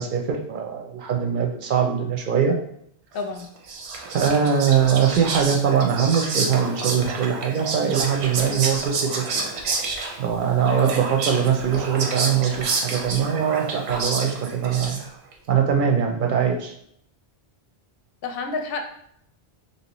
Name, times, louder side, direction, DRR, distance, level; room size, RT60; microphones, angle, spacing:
voice 1, 0.0-2.6 4.1-9.5 10.2-15.0 15.5-16.7, right 7 dB, 60° right, 3 dB, 0.6 m, -22 dB
voice 2, 3.1-3.5 18.2-18.8, left 4 dB, 70° left, 4 dB, 0.7 m, -29 dB
Whispering, 3.4-15.3, right 4 dB, 85° right, 0.9 m, -29 dB
3.1 x 2.8 x 2.9 m, 0.70 s
omnidirectional pair, 1.1 m